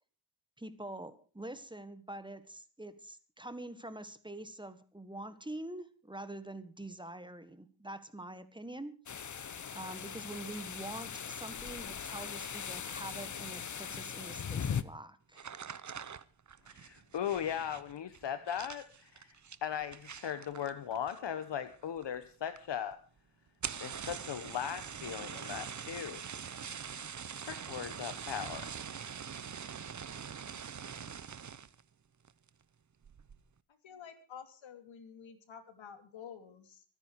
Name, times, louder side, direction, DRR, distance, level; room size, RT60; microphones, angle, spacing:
voice 1, 0.6-9.0 9.7-15.5, right 1 dB, 10° right, 12 dB, 1.6 m, -45 dB
sound 1, 9.1-14.8, left 7 dB, 40° left, 1.0 m, -40 dB
sound 2, 15.3-21.5 21.7-22.3 22.6-22.7 22.9-23.0 23.5-31.8 32.2-32.6 33.0-33.4, right 7 dB, 40° right, 1.0 m, -44 dB
voice 2, 16.7-19.4 19.6-23.0 23.8-26.2 27.4-28.7, left 9 dB, 65° left, 11 dB, 1.2 m, -38 dB
voice 3, 33.7-36.8, left 7 dB, 80° left, 8 dB, 2.8 m, -50 dB
24.0 x 9.9 x 4.7 m, 0.37 s
cardioid pair, 85°, 46 cm